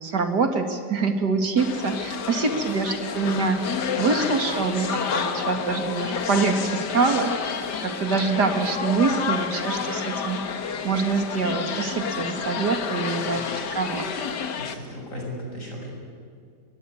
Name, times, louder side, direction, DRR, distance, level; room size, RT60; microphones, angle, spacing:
voice 1, 0.0-3.6 4.0-10.4 10.8-14.1, right 4 dB, 75° right, 6 dB, 2.8 m, -25 dB
sound 1, 1.6-14.7, left 6 dB, 85° left, 2.0 m, -30 dB
voice 2, 14.6-15.9, equal, 50° left, -1 dB, 7.4 m, -36 dB
25.0 x 21.0 x 9.7 m, 2.3 s
omnidirectional pair, 1.8 m